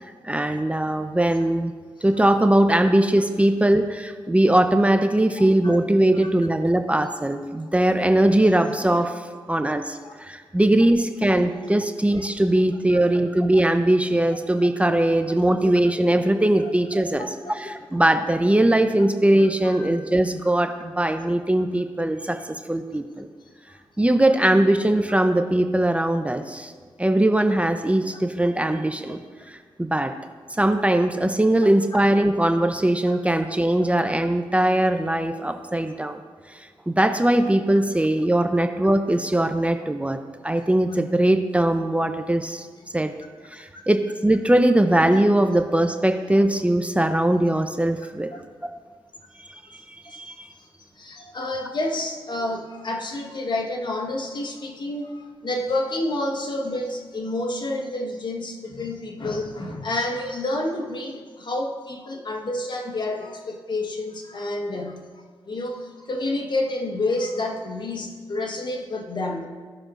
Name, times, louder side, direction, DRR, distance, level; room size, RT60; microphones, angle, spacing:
voice 1, 0.2-1.7 2.0-17.3 17.6-22.4 22.7-23.3 24.0-26.7 27.0-30.1 30.6-36.2 36.9-40.2 40.4-42.7 42.9-43.1 43.5-48.3 50.1-50.5, right 1 dB, 15° right, 7 dB, 0.7 m, -20 dB
voice 2, 19.4-19.9 23.7-24.1 33.1-33.2 48.3-48.4 50.0-50.2 51.0-65.0 65.5-69.5, left 2 dB, 55° left, 3 dB, 1.4 m, -29 dB
17.0 x 6.0 x 2.6 m, 1.5 s
supercardioid pair, 45°, 10 cm